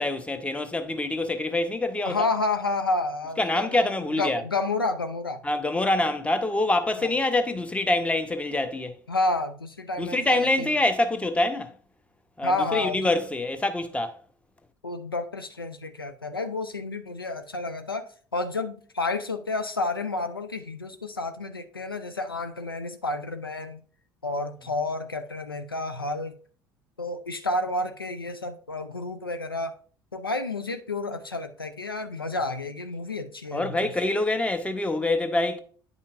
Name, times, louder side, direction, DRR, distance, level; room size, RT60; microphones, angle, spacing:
voice 1, 0.0-2.2 3.4-4.4 5.4-9.0 10.0-11.7 12.4-14.2 33.5-35.6, left 2 dB, 10° left, 0.8 m, -25 dB
voice 2, 2.0-5.4 7.0-7.1 9.1-10.7 12.4-13.1 14.8-23.8 24.2-26.3 27.0-29.7 30.1-33.9, left 2 dB, 90° left, 0.4 m, -30 dB
9.1 x 5.6 x 2.5 m
figure-of-eight pair, 60°, 12 cm